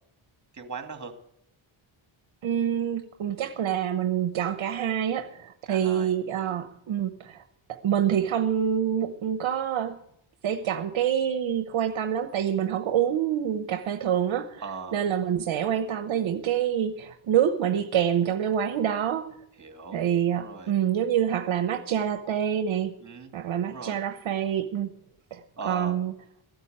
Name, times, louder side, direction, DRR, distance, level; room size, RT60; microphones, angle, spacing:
voice 1, 0.5-1.1 5.7-6.1 6.4-6.7 14.6-15.0 19.6-20.0 20.3-20.7 23.0-23.3 23.6-24.0 25.6-26.1, right 5 dB, 35° right, 6 dB, 2.3 m, -39 dB
voice 2, 2.4-7.4 7.7-10.0 10.4-14.6 14.9-19.3 19.9-22.9 23.3-24.9 25.3-25.4 25.7-26.1, right 9 dB, 65° right, 8 dB, 1.0 m, -26 dB
16.0 x 9.1 x 8.9 m, 0.74 s
wide cardioid pair, 140°, 49 cm